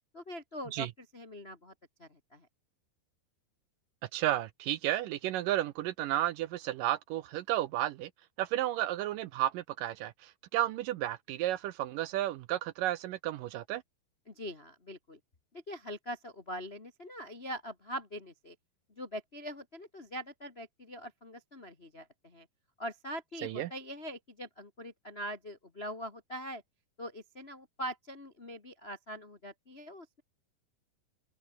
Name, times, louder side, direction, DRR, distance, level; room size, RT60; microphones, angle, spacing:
voice 1, 0.1-0.9 1.1-1.7 2.0-2.5 14.3-15.2 15.5-18.5 19.0-22.5 22.8-26.6 27.0-30.2, equal, 40° left, 0.9 m, -43 dB
voice 2, 4.1-8.1 8.4-13.8 23.4-23.7, right 14 dB, 75° right, 2.1 m, -32 dB
open air
omnidirectional pair, 4.4 m